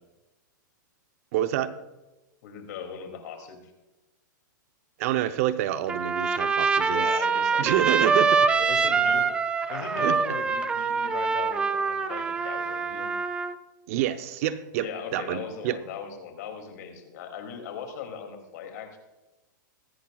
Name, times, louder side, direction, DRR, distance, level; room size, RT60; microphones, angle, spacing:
voice 1, 1.3-1.7 5.0-7.1 7.6-8.5 10.0-10.2 13.9-15.8, right 12 dB, 45° right, 12 dB, 0.7 m, -27 dB
voice 2, 2.4-3.7 6.9-8.0 8.6-9.3 9.7-13.2 14.8-19.0, left 7 dB, 55° left, 5 dB, 2.5 m, -39 dB
Trumpet, 5.9-13.5, right 5 dB, 10° right, 0.4 m, -25 dB
22.0 x 10.0 x 2.3 m, 1.0 s
hypercardioid pair, 155°, 11 cm